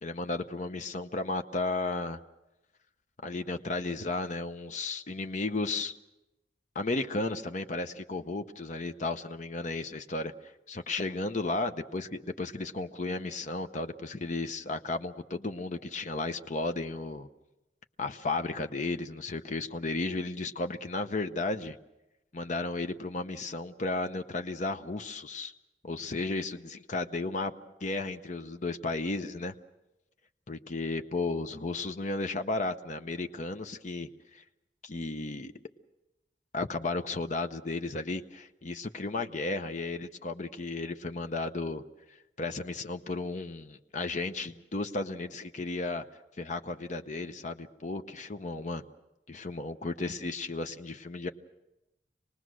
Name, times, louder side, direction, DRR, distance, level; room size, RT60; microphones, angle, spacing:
voice 1, 0.0-2.2 3.2-5.9 6.7-17.3 18.0-21.8 22.3-25.5 25.8-27.5 27.8-29.5 30.5-34.4 34.8-35.5 36.5-41.8 42.4-46.0 46.4-48.8 49.3-51.3, left 3 dB, 45° left, 7 dB, 0.7 m, -34 dB
26.0 x 19.5 x 6.2 m, 0.96 s
head